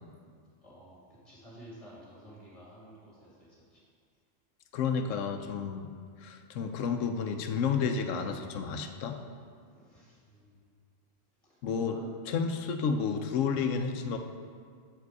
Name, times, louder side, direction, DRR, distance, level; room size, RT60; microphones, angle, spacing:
voice 1, 0.6-3.8 9.7-10.6 11.4-12.4, equal, 25° left, -6 dB, 2.1 m, -52 dB
voice 2, 4.7-5.9 6.2-9.2 11.6-12.0 12.3-14.2, left 6 dB, 75° left, 6 dB, 0.9 m, -31 dB
8.0 x 4.9 x 4.7 m, 2.1 s
omnidirectional pair, 1.3 m